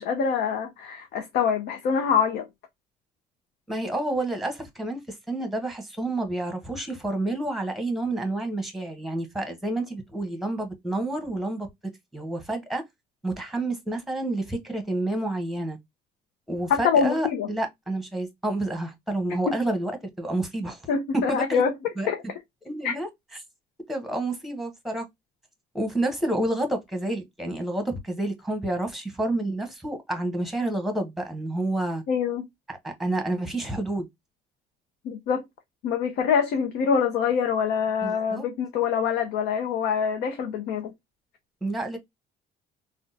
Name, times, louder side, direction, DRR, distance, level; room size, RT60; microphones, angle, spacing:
voice 1, 0.0-2.5 16.7-17.5 19.5-19.6 20.9-22.2 22.8-22.9 32.1-32.5 35.0-35.4 35.8-40.9, left 6 dB, 80° left, 0.6 m, -25 dB
voice 2, 3.7-5.0 5.3-11.7 12.1-12.8 13.2-15.8 16.5-19.9 20.2-20.8 21.3-21.6 22.0-22.1 22.6-23.1 23.9-25.1 25.7-32.0 32.7-34.1 38.0-38.4 41.6-42.0, right 1 dB, ahead, 1.0 m, -29 dB
3.6 x 2.2 x 2.6 m
cardioid pair, 110°, 17 cm